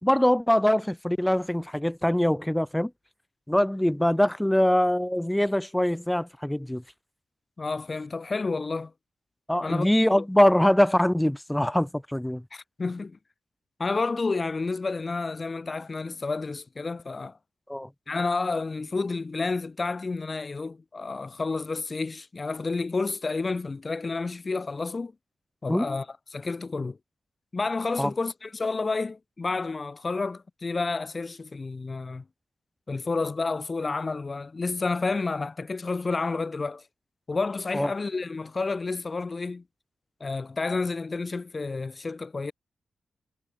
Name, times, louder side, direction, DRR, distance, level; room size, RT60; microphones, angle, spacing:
voice 1, 0.0-2.9 3.5-6.8 9.5-12.4 17.7-17.9 25.7-25.9 28.0-28.1 37.7-37.9, left 1 dB, 5° left, 1.2 m, -23 dB
voice 2, 7.6-8.9 9.6-9.9 10.2-10.3 12.5-13.2 13.8-17.4 18.1-25.1 25.6-26.1 26.3-27.0 27.5-32.2 32.9-36.9 37.3-39.6 40.2-42.5, left 3 dB, 25° left, 1.7 m, -30 dB
wide cardioid pair, 170°, 0 cm